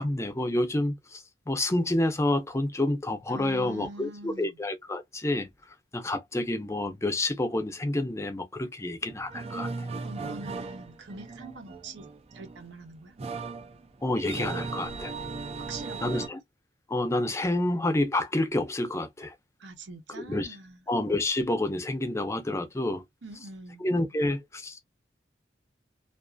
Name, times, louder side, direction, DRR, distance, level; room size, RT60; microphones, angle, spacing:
voice 1, 0.0-5.5 5.9-9.9 14.0-15.1 16.0-16.4 16.9-19.3 20.1-20.6 20.9-23.0 23.8-24.8, left 1 dB, 15° left, 0.6 m, -29 dB
voice 2, 3.3-4.6 10.0-12.1 12.3-13.1 15.7-16.3 19.6-20.8 23.2-23.8, right 2 dB, 80° right, 0.8 m, -43 dB
sound 1, 9.0-16.3, right 4 dB, 35° right, 0.4 m, -37 dB
2.5 x 2.5 x 2.3 m
head